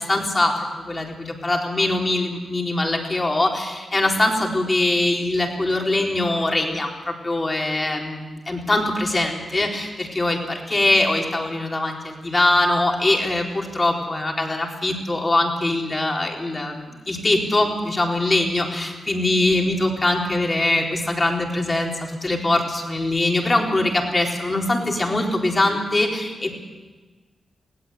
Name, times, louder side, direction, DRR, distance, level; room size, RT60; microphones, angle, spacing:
voice 1, 0.0-26.6, left 2 dB, 25° left, 0 dB, 4.0 m, -22 dB
19.5 x 17.0 x 8.1 m, 1.3 s
cardioid pair, 95°, 0 cm